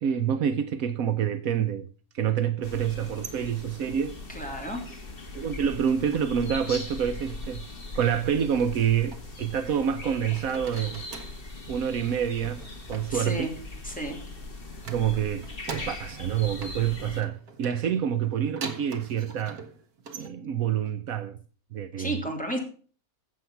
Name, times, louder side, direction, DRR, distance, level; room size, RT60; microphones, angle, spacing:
voice 1, 0.0-4.2 5.3-7.7 7.9-11.1 11.7-13.5 14.9-19.6 20.1-21.4 21.7-22.1, right 8 dB, 70° right, 1.2 m, -27 dB
sound 1, 2.6-17.2, left 2 dB, 40° left, 2.2 m, -40 dB
sound 2, 3.1-5.1 5.4-6.7 7.0-7.5 8.6-10.0 10.2-11.5 12.4-14.3 14.8-16.3 16.6-20.3, right 5 dB, 85° right, 2.1 m, -44 dB
voice 2, 4.3-5.0 13.1-13.5 13.8-14.2 22.0-22.6, right 1 dB, 5° left, 3.3 m, -32 dB
15.0 x 7.7 x 5.8 m
omnidirectional pair, 1.6 m